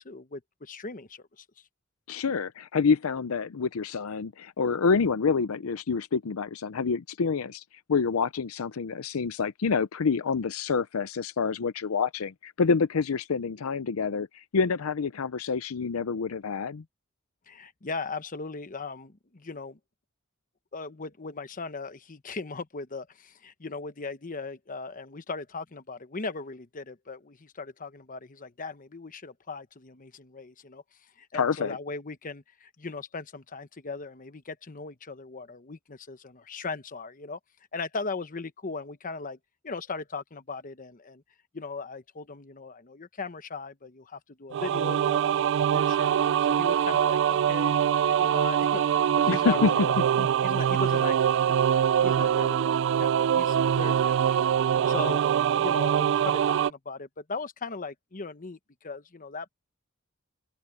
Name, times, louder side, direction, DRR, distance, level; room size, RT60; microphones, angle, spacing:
voice 1, 0.0-1.4 17.5-19.8 20.7-30.8 31.2-37.4 37.7-39.4 39.6-41.2 41.5-50.0 50.4-51.2 51.4-54.5 54.9-55.2 55.6-59.5, left 4 dB, 40° left, 1.0 m, -38 dB
voice 2, 2.1-7.6 7.9-16.8 31.3-31.8 49.3-49.7 50.2-50.3, left 5 dB, 85° left, 0.6 m, -27 dB
sound 1, 44.5-56.7, right 9 dB, 60° right, 0.3 m, -24 dB
open air
head